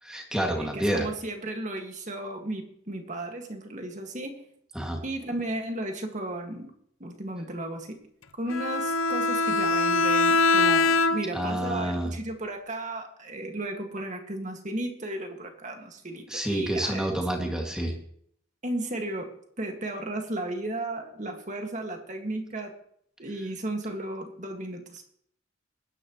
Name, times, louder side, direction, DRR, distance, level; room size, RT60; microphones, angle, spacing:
voice 1, 0.0-1.1 4.7-5.0 11.3-12.1 16.3-17.9, right 1 dB, 5° right, 1 dB, 2.1 m, -28 dB
voice 2, 0.6-4.4 5.0-6.7 7.0-8.0 8.3-17.1 18.6-22.7 23.2-25.0, right 1 dB, 35° right, 4 dB, 1.9 m, -34 dB
Bowed string instrument, 8.5-11.5, left 3 dB, 85° left, 0.7 m, -23 dB
20.5 x 10.0 x 3.1 m, 0.67 s
head